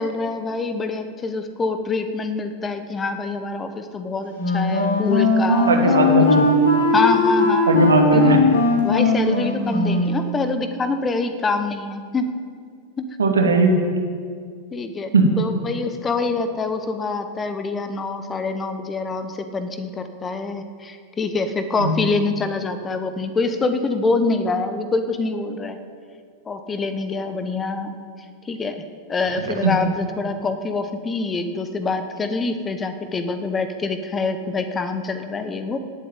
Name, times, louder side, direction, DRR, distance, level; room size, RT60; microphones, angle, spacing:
voice 1, 0.0-5.9 6.2-6.3 6.9-7.7 8.1-8.4 8.8-12.3 13.0-13.1 14.7-25.8 26.4-28.0 28.4-28.8 29.1-35.8, left 3 dB, 20° left, 9 dB, 1.2 m, -25 dB
Wind instrument woodwind instrument, 4.3-10.2, left 2 dB, 65° left, 3.6 m, -18 dB
voice 2, 5.7-6.4 7.7-8.4 13.2-13.8 15.1-15.3 21.8-22.0 29.5-29.7, right 2 dB, 70° right, 2 dB, 2.4 m, -18 dB
18.0 x 8.1 x 9.0 m, 2.1 s
figure-of-eight pair, 90°, 0 cm